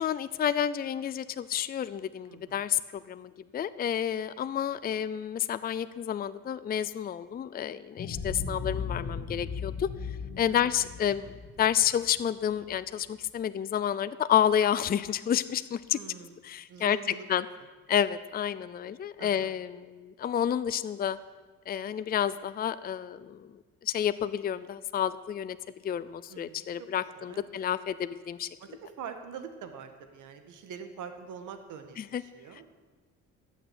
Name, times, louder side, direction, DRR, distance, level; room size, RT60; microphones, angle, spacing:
voice 1, 0.0-9.9 10.4-11.3 11.6-16.0 16.4-17.0 17.3-17.5 17.9-21.2 21.7-23.5 23.8-25.6 25.8-28.5 32.0-32.2 32.5-32.6, left 9 dB, 30° left, 14 dB, 0.5 m, -30 dB
voice 2, 2.3-2.6 10.4-10.6 15.9-16.4 16.7-17.3 19.2-19.6 26.3-26.6 27.2-27.4 28.6-32.6, right 7 dB, 70° right, 7 dB, 1.8 m, -44 dB
Drop Into Deep Long, 8.0-12.7, left 5 dB, 45° left, 1.9 m, -37 dB
14.5 x 6.4 x 9.9 m, 1.3 s
cardioid pair, 100°, 31 cm